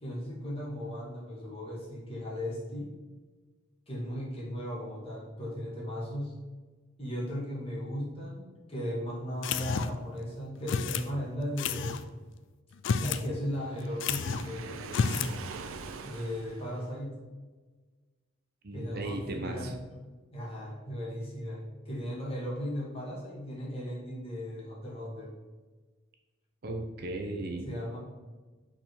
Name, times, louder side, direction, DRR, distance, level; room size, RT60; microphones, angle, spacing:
voice 1, 0.0-2.9 3.9-6.4 7.0-12.0 13.0-15.0 16.0-17.2 18.7-19.8 20.3-25.3 27.6-28.0, equal, 30° left, -5 dB, 1.9 m, -37 dB
sound 1, 9.4-10.1 10.7-11.1 11.6-12.0 12.7-13.3 13.5-13.6 14.0-14.5 14.9-15.4, left 5 dB, 60° left, 0.4 m, -30 dB
Waves surf, 13.5-17.0, right 4 dB, 85° right, 0.5 m, -43 dB
voice 2, 18.6-19.7 26.6-27.7, right 2 dB, 50° right, 3 dB, 0.7 m, -36 dB
5.8 x 4.2 x 4.6 m, 1.3 s
head